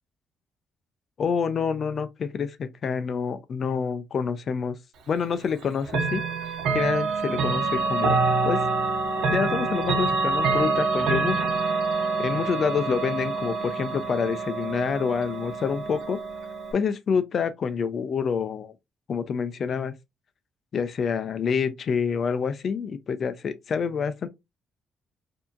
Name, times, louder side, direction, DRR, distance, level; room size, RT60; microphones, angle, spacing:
voice 1, 1.2-4.8 5.1-6.2 6.7-8.2 8.4-8.6 9.2-11.4 12.2-16.2 16.7-18.7 19.1-19.9 20.7-24.3, left 6 dB, 55° left, 0.6 m, -27 dB
Chime / Clock, 5.9-16.7, right 3 dB, 85° right, 0.9 m, -26 dB
4.6 x 2.8 x 2.5 m
cardioid pair, 90°, 0 cm